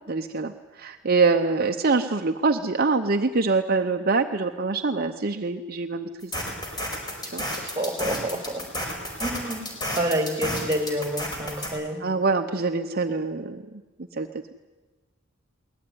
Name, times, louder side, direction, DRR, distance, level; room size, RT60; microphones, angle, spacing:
voice 1, 0.1-6.3 7.3-7.4 12.0-13.6 14.1-14.5, right 4 dB, 45° right, 5 dB, 0.8 m, -24 dB
sound 1, 6.2-11.7, equal, 20° left, 4.8 m, -31 dB
voice 2, 7.8-8.6 9.2-9.6 10.0-12.0, right 1 dB, 15° right, 6 dB, 2.7 m, -28 dB
22.0 x 19.0 x 9.5 m, 1.3 s
head